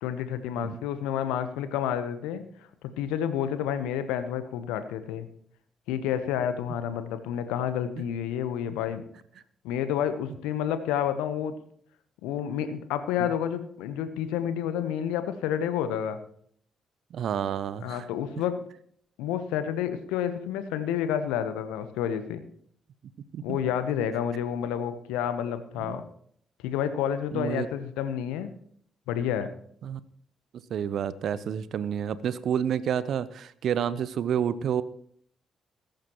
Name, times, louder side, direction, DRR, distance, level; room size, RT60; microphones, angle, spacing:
voice 1, 0.0-2.5 2.8-5.3 5.9-9.1 9.6-11.6 12.2-16.2 17.8-18.6 19.2-22.4 23.4-26.0 26.6-28.5 29.1-29.5, left 9 dB, 75° left, 11 dB, 1.0 m, -29 dB
voice 2, 17.1-18.1 23.3-23.6 25.8-25.9 27.3-27.7 29.8-30.0 30.7-34.8, right 8 dB, 65° right, 17 dB, 0.7 m, -29 dB
20.0 x 10.5 x 3.0 m, 0.63 s
hypercardioid pair, 40°, 0 cm